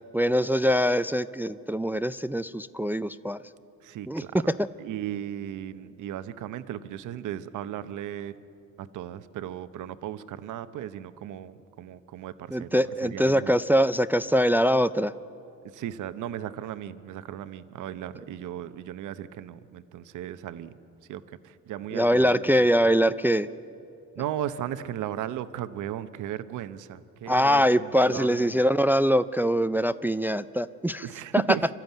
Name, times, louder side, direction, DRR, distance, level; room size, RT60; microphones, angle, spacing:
voice 1, 0.1-3.4 4.1-4.7 12.5-15.1 21.9-23.5 27.3-31.1 31.3-31.4, equal, 5° right, 14 dB, 0.4 m, -23 dB
voice 2, 3.8-4.5 4.8-8.3 8.8-12.7 13.0-13.5 15.7-20.7 21.1-22.7 24.2-28.6 31.0-31.7, right 11 dB, 80° right, 12 dB, 0.8 m, -36 dB
25.0 x 13.0 x 9.2 m, 2.7 s
cardioid pair, 90°, 30 cm